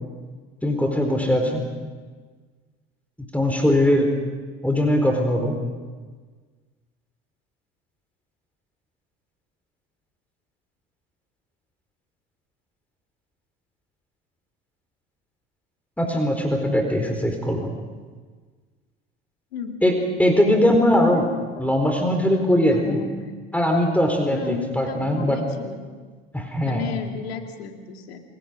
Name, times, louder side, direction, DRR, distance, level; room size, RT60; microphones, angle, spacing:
voice 1, 0.6-1.6 3.2-4.1 4.6-5.6 16.0-17.7 19.8-21.2 21.6-23.0 23.5-25.4 26.3-26.8, left 1 dB, 5° left, 3 dB, 4.4 m, -20 dB
voice 2, 22.7-23.3 24.3-25.9 26.6-28.2, left 7 dB, 85° left, 4 dB, 2.6 m, -33 dB
29.0 x 21.5 x 5.3 m, 1.4 s
hypercardioid pair, 75°, 30 cm